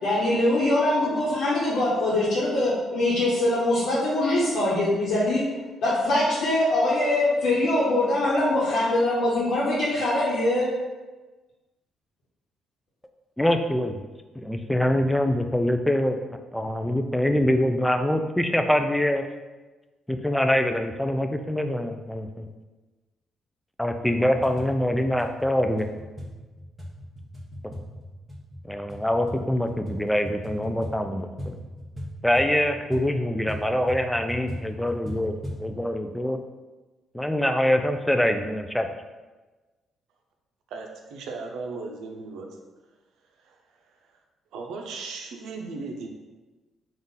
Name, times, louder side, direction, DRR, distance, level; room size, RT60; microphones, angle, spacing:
voice 1, 0.0-5.4 5.8-10.7, left 1 dB, 70° left, -8 dB, 1.0 m, -23 dB
voice 2, 13.4-14.0 14.4-16.2 16.5-19.2 20.1-22.5 23.8-25.9 28.7-31.6 32.2-35.3 35.6-36.4 37.1-38.9, left 1 dB, 5° left, 6 dB, 0.3 m, -24 dB
sound 1, 24.0-35.7, equal, 15° right, 0.9 m, -39 dB
voice 3, 40.7-42.5 43.4-43.6 44.5-46.1, right 4 dB, 85° right, 2 dB, 0.5 m, -36 dB
3.9 x 2.4 x 3.8 m, 1.2 s
cardioid pair, 90°, 0 cm